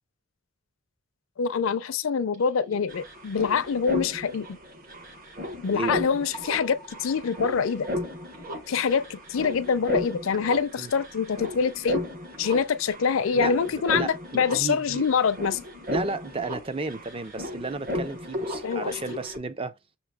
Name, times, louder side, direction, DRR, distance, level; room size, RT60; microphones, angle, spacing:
voice 1, 1.4-4.6 5.6-7.9 8.7-12.0 12.4-15.6 18.6-19.2, left 6 dB, 75° left, 0.4 m, -25 dB
sound 1, 2.3-2.4 2.6-19.4, left 1 dB, 45° right, 1.1 m, -35 dB
voice 2, 13.3-15.1 15.9-19.8, right 3 dB, 25° right, 0.4 m, -33 dB
6.3 x 2.9 x 2.2 m
head